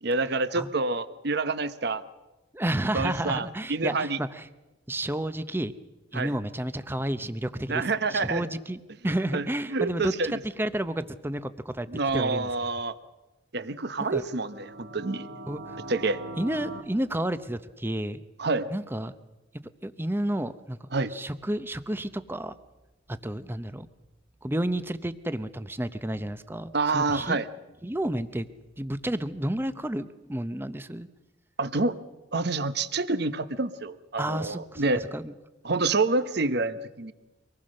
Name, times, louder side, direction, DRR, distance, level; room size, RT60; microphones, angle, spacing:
voice 1, 0.0-2.0 2.9-4.2 6.1-6.3 7.7-8.5 9.3-10.3 11.9-12.9 13.5-15.3 15.9-16.2 18.4-18.7 20.9-21.1 26.7-27.5 31.6-31.9 32.3-35.0 35.6-37.1, right 3 dB, 55° right, 13 dB, 0.9 m, -27 dB
voice 2, 2.5-4.5 4.9-5.7 6.1-7.8 8.1-11.9 12.1-12.5 14.1-14.2 15.5-15.8 16.4-18.2 18.7-19.1 19.8-20.8 21.1-22.5 23.1-23.9 24.4-27.4 27.8-28.5 28.8-31.1 34.2-34.8 35.1-35.3, right 1 dB, 10° right, 12 dB, 0.7 m, -31 dB
sound 1, 14.3-16.8, right 1 dB, 80° right, 1.9 m, -41 dB
25.0 x 19.5 x 6.5 m, 1.1 s
head